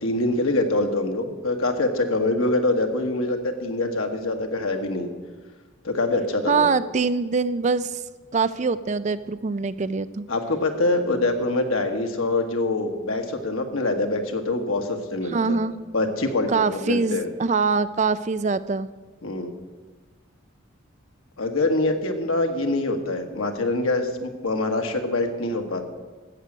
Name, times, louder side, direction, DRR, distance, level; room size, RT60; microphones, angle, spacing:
voice 1, 0.0-5.1 5.8-6.7 10.3-15.6 15.9-17.3 19.2-19.5 21.4-25.8, left 2 dB, 85° left, 5 dB, 1.5 m, -24 dB
voice 2, 6.5-7.9 8.3-10.2 15.3-15.7 16.5-18.9, right 4 dB, 35° right, 14 dB, 0.4 m, -23 dB
13.5 x 7.9 x 7.5 m, 1.3 s
head